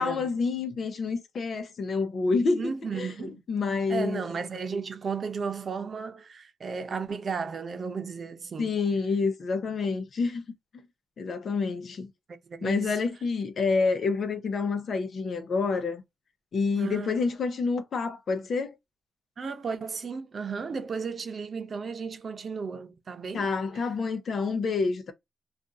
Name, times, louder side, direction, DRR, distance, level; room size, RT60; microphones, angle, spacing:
voice 1, 0.0-3.1 3.5-4.2 8.6-10.4 11.2-12.1 12.6-16.0 16.5-18.7 23.3-25.1, left 4 dB, 70° left, 0.8 m, -28 dB
voice 2, 2.5-3.4 3.9-8.7 12.3-13.0 16.8-17.2 19.4-23.9, right 5 dB, 60° right, 0.7 m, -34 dB
2.6 x 2.5 x 3.6 m
cardioid pair, 60°, 0 cm